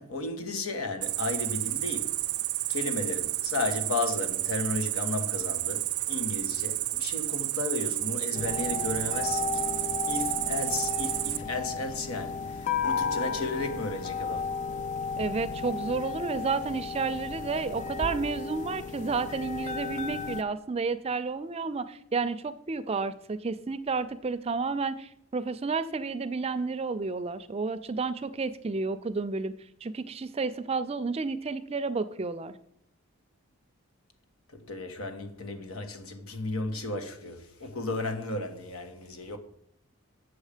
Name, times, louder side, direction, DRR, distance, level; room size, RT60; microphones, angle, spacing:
voice 1, 0.0-2.2 2.7-14.5 34.5-39.4, left 3 dB, 90° left, 1.2 m, -34 dB
Cricket, 1.0-11.4, right 15 dB, 90° right, 0.6 m, -31 dB
sound 1, 8.3-20.4, left 5 dB, 35° left, 0.5 m, -34 dB
voice 2, 15.2-29.5 29.8-32.5, right 4 dB, 30° right, 0.4 m, -31 dB
7.8 x 6.4 x 5.0 m
head